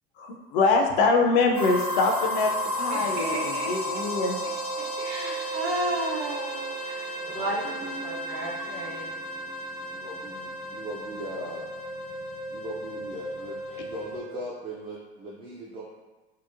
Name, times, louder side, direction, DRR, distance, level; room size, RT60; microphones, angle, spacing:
voice 1, 0.5-2.5 2.8-4.4, left 3 dB, 55° left, 2 dB, 0.5 m, -23 dB
sound 1, 1.5-14.2, equal, 90° left, 1.0 m, -33 dB
voice 2, 2.9-3.7 4.4-4.5 5.0-9.1, right 1 dB, 45° right, -3 dB, 0.9 m, -33 dB
voice 3, 7.1-7.9 9.9-11.7 12.5-15.8, right 1 dB, 20° right, -4 dB, 0.4 m, -39 dB
sound 2, 7.6-11.2, right 2 dB, 90° right, 0.8 m, -44 dB
2.8 x 2.0 x 2.4 m, 1.2 s
hypercardioid pair, 75°, 33 cm